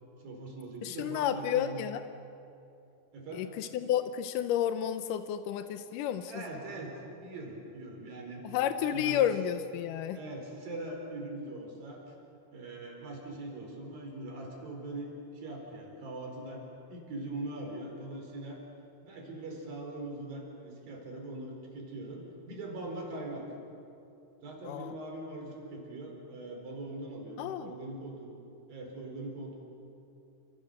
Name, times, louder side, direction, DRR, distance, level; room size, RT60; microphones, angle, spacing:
voice 1, 0.2-1.8 3.1-3.5 6.2-8.4 8.9-9.3 10.1-12.0 12.5-16.6 16.9-18.6 19.0-23.4 24.4-28.3 28.7-29.6, right 2 dB, 60° right, 1 dB, 6.2 m, -41 dB
voice 2, 0.8-2.0 3.3-6.4 8.4-10.2 24.6-25.0 27.4-27.7, left 10 dB, 75° left, 9 dB, 1.9 m, -31 dB
29.0 x 27.5 x 6.7 m, 2.7 s
omnidirectional pair, 4.7 m